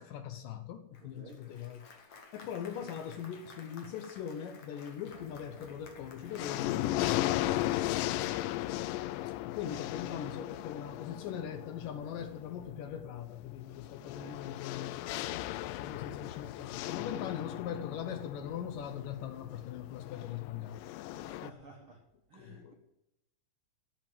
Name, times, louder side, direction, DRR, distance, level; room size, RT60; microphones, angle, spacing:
voice 1, 0.0-1.9 2.3-7.6 9.5-15.0 15.3-20.8 21.5-21.6 22.3-22.7, left 9 dB, 75° left, 2.1 m, -41 dB
Applause, 0.9-8.8, left 4 dB, 50° left, 2.1 m, -55 dB
voice 2, 1.0-1.4 8.0-8.3 14.0-14.4 21.1-22.0 22.3-22.7, right 3 dB, 60° right, 1.4 m, -53 dB
sound 1, 5.1-5.7 6.1-21.5, left 15 dB, 90° left, 1.9 m, -37 dB
14.0 x 5.1 x 9.0 m
omnidirectional pair, 4.4 m